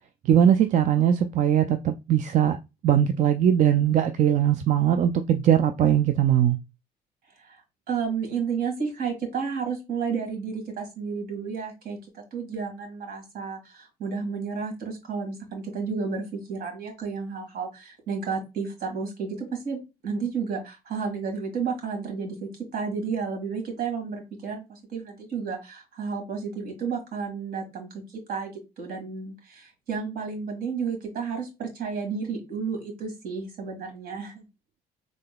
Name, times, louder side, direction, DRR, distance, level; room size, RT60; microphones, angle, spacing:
voice 1, 0.2-2.6 2.8-6.6, right 9 dB, 45° right, 0.4 m, -20 dB
voice 2, 7.4-19.8 20.0-34.4, right 5 dB, 65° right, 1.9 m, -32 dB
3.7 x 3.7 x 2.2 m
cardioid pair, 110°, 17 cm